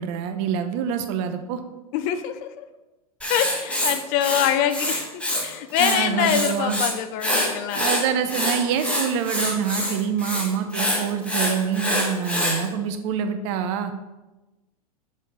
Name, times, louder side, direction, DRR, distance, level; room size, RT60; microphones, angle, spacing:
voice 1, 0.0-1.6 5.8-6.8 7.7-13.9, right 7 dB, 50° right, 8 dB, 0.8 m, -26 dB
voice 2, 1.9-2.6 3.3-7.9, left 10 dB, 45° left, 10 dB, 0.6 m, -25 dB
Writing, 3.2-5.4 5.7-6.9 7.2-12.6, left 1 dB, 5° left, 1.5 m, -25 dB
6.4 x 4.3 x 5.2 m, 1.1 s
hypercardioid pair, 105°, 19 cm